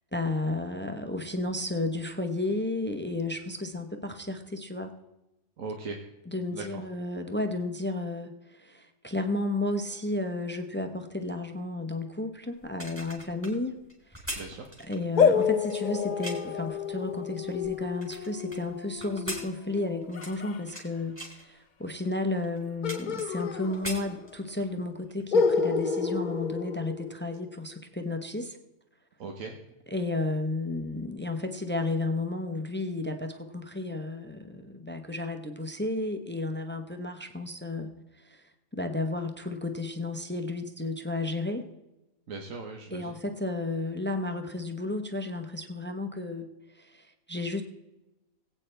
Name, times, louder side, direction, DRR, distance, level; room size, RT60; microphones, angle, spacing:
voice 1, 0.1-5.0 6.3-13.8 14.1-14.4 14.9-28.6 29.9-38.4 38.7-41.6 42.9-46.5 46.7-47.6, left 2 dB, 10° left, 6 dB, 0.7 m, -33 dB
voice 2, 5.6-6.0 6.5-6.8 14.3-14.7 29.2-29.5 42.3-43.1, right 4 dB, 75° right, 2 dB, 1.5 m, -38 dB
sound 1, 12.6-16.6 17.2-18.6 19.0-20.9 21.2-21.4 22.0-22.1 22.4-23.5 23.7-24.7 25.1-25.3, equal, 10° right, 2.9 m, -41 dB
sound 2, 15.2-20.6 22.8-24.3 24.6-24.7 25.3-27.5, left 5 dB, 50° left, 0.6 m, -29 dB
19.5 x 8.6 x 3.4 m, 0.98 s
omnidirectional pair, 1.4 m